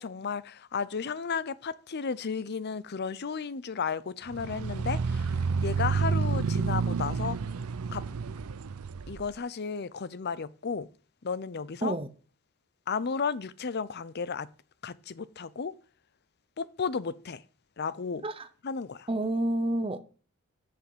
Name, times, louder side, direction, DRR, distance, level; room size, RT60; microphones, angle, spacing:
voice 1, 0.0-5.3 5.6-7.4 7.9-8.0 9.1-10.9 11.2-12.0 12.9-14.5 14.8-15.7 16.6-17.4 17.8-18.2 18.6-19.1, left 5 dB, 50° left, 0.6 m, -33 dB
sound 1, 4.3-9.3, right 5 dB, 85° right, 0.5 m, -30 dB
voice 2, 19.1-20.0, right 1 dB, 25° right, 0.7 m, -29 dB
7.7 x 7.1 x 7.9 m
head